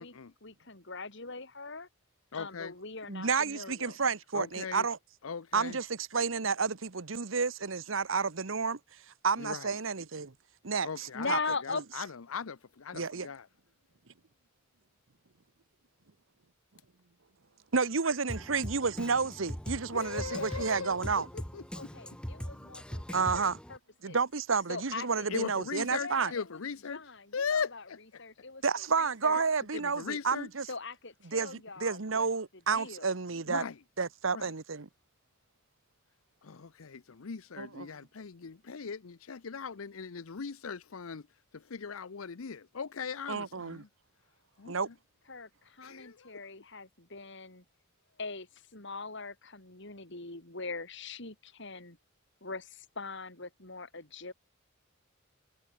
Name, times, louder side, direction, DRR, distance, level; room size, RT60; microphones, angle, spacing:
voice 1, 0.0-1.9 2.3-4.0 11.0-11.8 21.7-23.8 24.0-24.2 24.7-25.3 25.9-26.5 26.9-27.8 28.2-29.4 30.7-32.3 32.7-33.1 45.3-47.6 48.2-52.0 52.4-54.3, left 4 dB, 60° left, 4.9 m, -41 dB
voice 2, 2.3-2.7 4.3-4.9 5.2-5.8 9.4-9.7 10.8-13.5 19.9-21.9 25.3-27.0 27.3-28.2 29.7-30.5 33.5-33.8 34.3-34.5 36.4-41.3 41.5-43.9 44.6-44.9 45.8-46.4, left 5 dB, 85° left, 0.7 m, -39 dB
voice 3, 3.1-5.0 5.5-8.8 9.2-10.3 10.6-11.4 12.9-13.3 17.7-21.3 23.1-23.6 24.0-26.3 28.6-30.7 31.3-33.6 34.0-34.9 37.6-37.9 43.3-43.8 44.7-44.9, right 5 dB, 70° right, 1.1 m, -31 dB
Drum kit, 18.3-23.8, equal, 5° left, 2.6 m, -41 dB
head